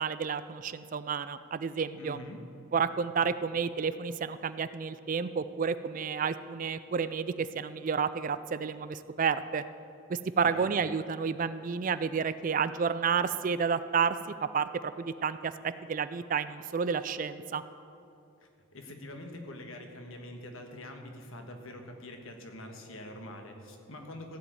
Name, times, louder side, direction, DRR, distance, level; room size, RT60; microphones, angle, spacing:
voice 1, 0.0-2.2 2.7-9.6 10.1-17.6, right 6 dB, 40° right, 14 dB, 0.3 m, -31 dB
voice 2, 1.9-2.4 10.4-10.7 18.4-24.4, left 1 dB, 70° left, 4 dB, 1.5 m, -45 dB
15.0 x 5.1 x 9.1 m, 2.7 s
head